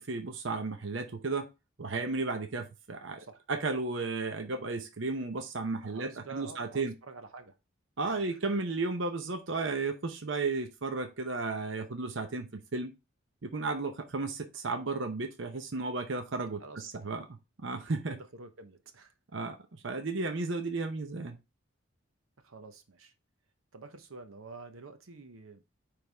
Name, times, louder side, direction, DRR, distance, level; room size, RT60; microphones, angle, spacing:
voice 1, 0.0-1.5 1.8-6.9 8.0-12.9 13.4-17.2 17.6-18.1 19.3-19.6 19.8-21.4, right 3 dB, 65° right, 0.8 m, -34 dB
voice 2, 5.8-7.6 8.0-8.4 16.6-17.1 18.1-19.1 22.4-23.1 23.7-25.6, right 4 dB, 90° right, 0.9 m, -48 dB
9.1 x 3.5 x 3.4 m
head